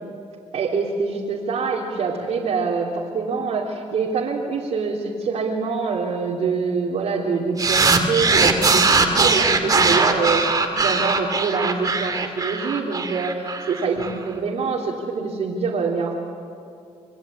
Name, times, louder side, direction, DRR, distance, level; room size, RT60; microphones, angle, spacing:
voice 1, 0.5-16.1, right 4 dB, 65° right, -3 dB, 3.1 m, -25 dB
sound 1, 7.6-14.1, right 4 dB, 30° right, 2.5 m, -20 dB
27.0 x 20.5 x 8.7 m, 2.3 s
cardioid pair, 100°, 12 cm